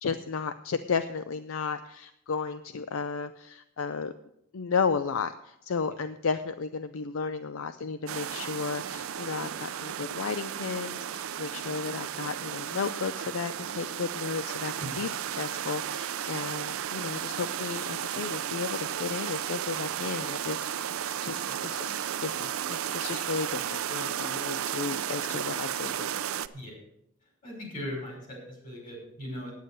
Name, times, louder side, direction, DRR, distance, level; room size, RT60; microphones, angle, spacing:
voice 1, 0.0-4.1 4.5-15.1 15.3-21.0 21.2-26.2, left 5 dB, 65° left, 11 dB, 0.5 m, -33 dB
sound 1, 8.1-26.5, right 9 dB, 70° right, 0.5 m, -34 dB
voice 2, 27.2-29.5, left 1 dB, 40° left, -1 dB, 5.5 m, -39 dB
9.4 x 9.3 x 6.5 m, 0.78 s
head